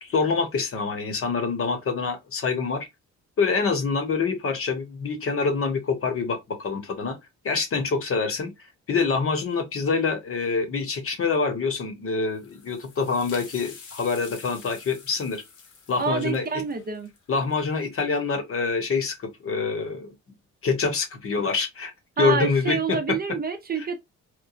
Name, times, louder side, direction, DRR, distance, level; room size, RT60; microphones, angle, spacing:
voice 1, 0.0-2.9 3.4-7.2 7.4-8.5 8.9-15.4 15.9-16.5 17.3-20.1 20.6-21.9 22.2-23.2 23.8-23.9, left 4 dB, 45° left, 0.9 m, -26 dB
sound 1, 12.3-17.8, left 5 dB, 75° left, 1.0 m, -47 dB
voice 2, 16.0-17.1 22.2-23.9, right 5 dB, 30° right, 0.6 m, -27 dB
3.0 x 2.1 x 2.4 m
cardioid pair, 90°, 30 cm